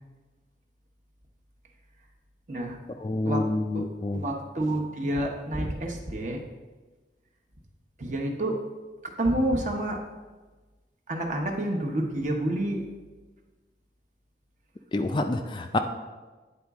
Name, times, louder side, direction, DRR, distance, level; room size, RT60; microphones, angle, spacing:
voice 1, 3.0-4.2 14.9-15.8, left 2 dB, 25° left, 6 dB, 0.3 m, -27 dB
voice 2, 4.1-6.4 8.0-8.6 9.2-10.0 11.1-12.8, right 1 dB, 45° right, 1 dB, 0.9 m, -28 dB
9.6 x 4.0 x 3.5 m, 1.3 s
head